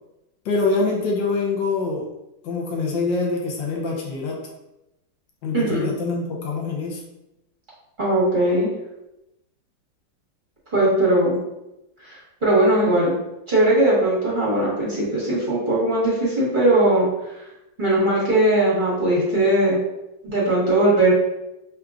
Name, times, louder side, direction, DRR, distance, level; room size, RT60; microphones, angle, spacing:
voice 1, 0.4-2.0 2.4-4.4 5.4-7.0, left 3 dB, 75° left, -1 dB, 1.5 m, -24 dB
voice 2, 5.5-5.9 8.0-8.7 10.7-11.4 12.0-13.1 13.5-17.1 17.8-19.8 20.2-21.1, right 1 dB, 25° right, -7 dB, 1.4 m, -19 dB
4.9 x 3.2 x 2.4 m, 0.91 s
omnidirectional pair, 2.2 m